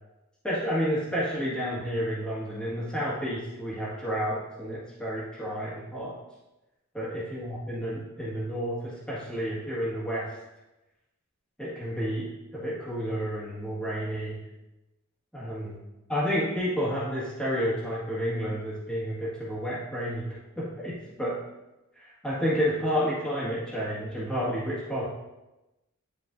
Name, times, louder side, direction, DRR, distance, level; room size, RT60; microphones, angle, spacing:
voice 1, 0.4-6.2 6.9-10.3 11.6-12.3 12.5-14.4 15.3-15.8 16.1-20.3 20.6-21.3 21.9-25.0, equal, 5° left, -9 dB, 1.7 m, -30 dB
10.5 x 4.7 x 2.6 m, 1.0 s
head